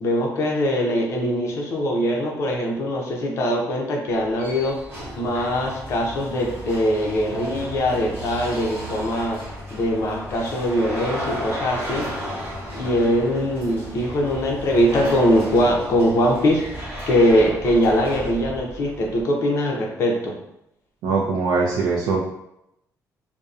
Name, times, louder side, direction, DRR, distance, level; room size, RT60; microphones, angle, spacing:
voice 1, 0.0-4.8 5.2-9.4 9.7-12.1 12.7-16.6 17.1-20.3, equal, 45° left, -1 dB, 0.5 m, -22 dB
sound 1, 4.1-19.2, equal, 30° right, 0.9 m, -34 dB
voice 2, 21.0-22.2, right 4 dB, 85° right, -4 dB, 0.4 m, -21 dB
2.6 x 2.0 x 2.4 m, 0.82 s
cardioid pair, 170°, 6 cm